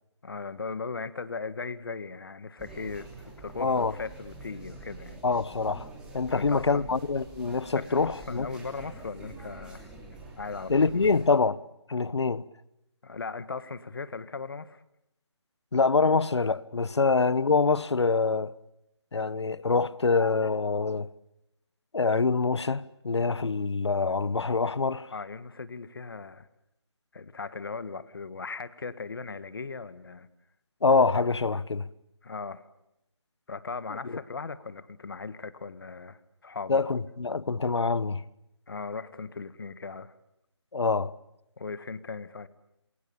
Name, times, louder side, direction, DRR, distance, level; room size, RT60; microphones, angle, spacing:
voice 1, 0.2-5.2 6.3-6.9 7.7-9.9 10.4-11.1 13.0-14.8 25.1-26.5 27.1-30.3 32.2-32.6 33.5-36.8 38.7-40.1 41.6-42.5, left 4 dB, 50° left, 1.6 m, -38 dB
sound 1, 2.6-11.3, right 2 dB, 5° right, 3.0 m, -46 dB
voice 2, 3.6-3.9 5.2-5.9 6.1-8.5 10.7-11.6 11.9-12.4 15.7-18.6 19.1-21.1 21.9-25.1 30.8-31.9 34.0-34.1 36.7-38.2 40.7-41.1, left 4 dB, 65° left, 1.2 m, -25 dB
28.0 x 22.5 x 8.8 m
figure-of-eight pair, 170°, 15 cm